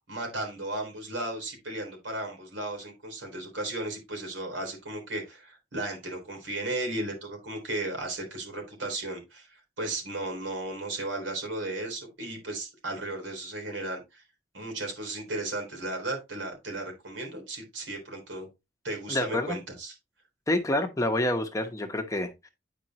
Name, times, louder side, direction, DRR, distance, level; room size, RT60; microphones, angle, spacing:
voice 1, 0.1-14.2 14.5-18.5 18.8-20.0, right 2 dB, 85° right, 3.6 m, -35 dB
voice 2, 19.1-19.6 20.5-22.5, left 1 dB, 15° left, 0.9 m, -28 dB
9.1 x 5.2 x 2.9 m
head